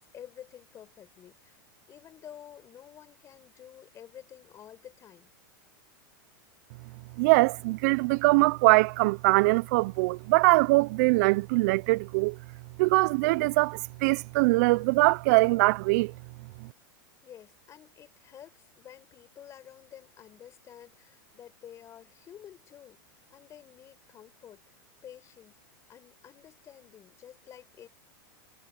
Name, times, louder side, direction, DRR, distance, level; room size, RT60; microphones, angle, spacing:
voice 1, 0.0-1.6 1.9-5.3 17.2-23.0 23.3-24.6 25.0-25.6 25.9-27.9, left 10 dB, 25° left, 6.4 m, -50 dB
voice 2, 7.2-12.4 12.8-16.1, right 23 dB, 55° right, 0.4 m, -22 dB
supercardioid pair, 140°, 11 cm